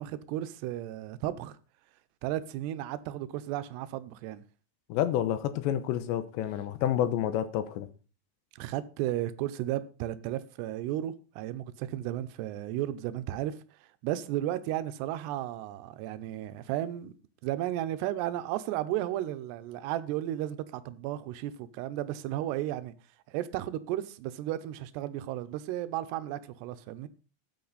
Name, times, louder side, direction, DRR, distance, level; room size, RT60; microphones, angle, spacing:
voice 1, 0.0-1.6 2.2-4.4 8.6-13.5 14.0-17.1 17.4-22.9 23.3-27.1, right 13 dB, 75° right, 2.7 m, -34 dB
voice 2, 4.9-7.9, left 11 dB, 80° left, 3.1 m, -29 dB
13.0 x 9.4 x 4.1 m
omnidirectional pair, 5.2 m